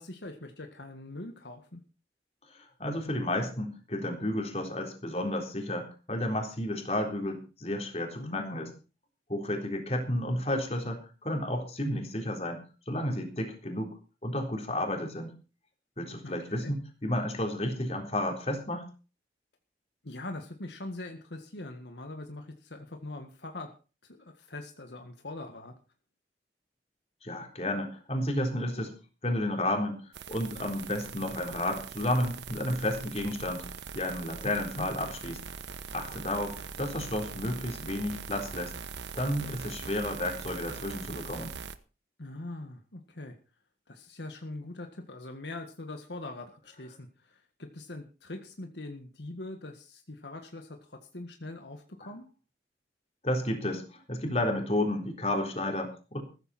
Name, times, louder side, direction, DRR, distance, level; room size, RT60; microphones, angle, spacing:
voice 1, 0.0-1.8 8.2-8.7 16.2-16.8 20.0-23.7 24.0-25.7 34.4-34.9 42.2-43.4 43.9-52.2, left 2 dB, 80° left, 5 dB, 1.8 m, -42 dB
voice 2, 2.5-8.7 9.3-13.9 14.2-15.3 16.0-18.9 27.2-29.0 29.2-33.6 33.9-35.4 35.9-38.7 39.1-41.5 53.2-56.2, left 1 dB, 35° left, 3 dB, 3.8 m, -32 dB
sound 1, 30.1-41.8, right 5 dB, 80° right, 1.1 m, -42 dB
15.0 x 14.0 x 4.3 m, 0.35 s
head